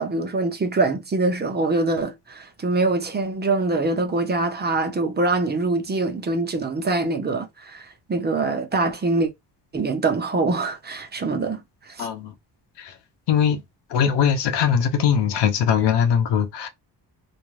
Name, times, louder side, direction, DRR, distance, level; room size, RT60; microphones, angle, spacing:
voice 1, 0.0-9.3 9.7-12.1, right 3 dB, 25° right, 0.6 m, -24 dB
voice 2, 12.0-12.3 12.8-12.9 13.3-13.6 13.9-16.7, left 8 dB, 80° left, 0.8 m, -21 dB
2.6 x 2.3 x 3.1 m
cardioid pair, 145°, 42 cm